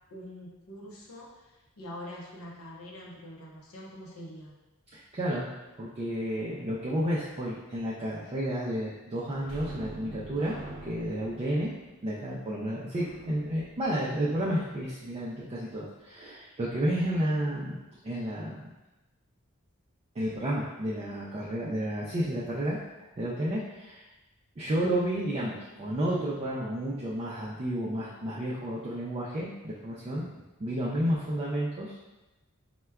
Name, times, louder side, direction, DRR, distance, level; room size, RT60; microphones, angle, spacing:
voice 1, 0.1-4.6, equal, 75° left, -2 dB, 0.6 m, -44 dB
voice 2, 4.9-5.5 5.8-10.6 10.8-11.7 12.0-18.7 20.2-22.8 23.2-24.1 24.6-30.3 30.6-32.1, right 1 dB, 30° right, -7 dB, 0.4 m, -31 dB
sound 1, 9.4-14.8 22.1-22.3 22.6-22.8, right 1 dB, 75° right, 0.6 m, -46 dB
4.5 x 2.2 x 2.2 m, 1.0 s
head